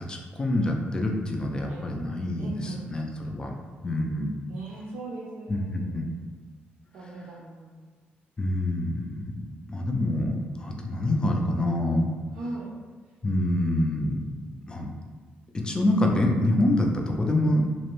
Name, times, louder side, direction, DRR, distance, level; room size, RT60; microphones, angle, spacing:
voice 1, 0.0-3.5 3.8-4.3 5.5-6.1 7.0-7.1 8.4-12.1 13.2-14.2 14.7-14.9 15.5-17.6, left 1 dB, 20° left, 1 dB, 0.3 m, -26 dB
voice 2, 2.4-2.8 4.5-6.0 6.9-7.9 11.0-11.4 12.4-12.7, right 2 dB, 75° right, -5 dB, 0.5 m, -39 dB
2.5 x 2.0 x 2.9 m, 1.5 s
cardioid pair, 115°, 4 cm